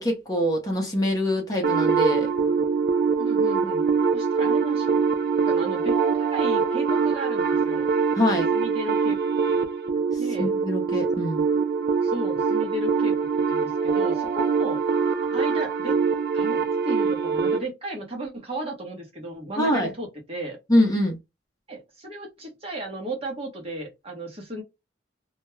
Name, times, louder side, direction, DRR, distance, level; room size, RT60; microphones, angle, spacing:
voice 1, 0.0-2.3 8.1-8.5 10.1-11.4 19.6-19.9 20.7-21.2, left 1 dB, 20° left, 0.7 m, -24 dB
sound 1, 1.6-17.6, right 5 dB, 55° right, 0.3 m, -23 dB
voice 2, 3.2-3.9 4.1-5.0 5.5-7.9 8.5-9.2 9.5-9.6 10.2-10.5 12.0-14.8 15.3-16.0 16.3-20.6 21.7-24.6, right 1 dB, 30° right, 0.8 m, -34 dB
2.3 x 2.1 x 2.9 m
head